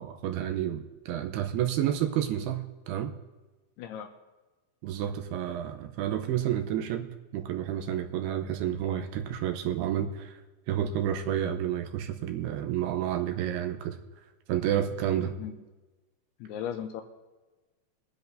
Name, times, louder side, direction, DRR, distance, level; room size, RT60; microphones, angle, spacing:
voice 1, 0.0-3.1 4.8-10.4 10.7-14.0 14.5-15.3, right 10 dB, 75° right, 5 dB, 2.5 m, -30 dB
voice 2, 3.8-4.1 15.2-15.6 16.4-17.0, left 9 dB, 85° left, 6 dB, 2.4 m, -37 dB
22.0 x 10.5 x 2.7 m, 1.2 s
omnidirectional pair, 5.2 m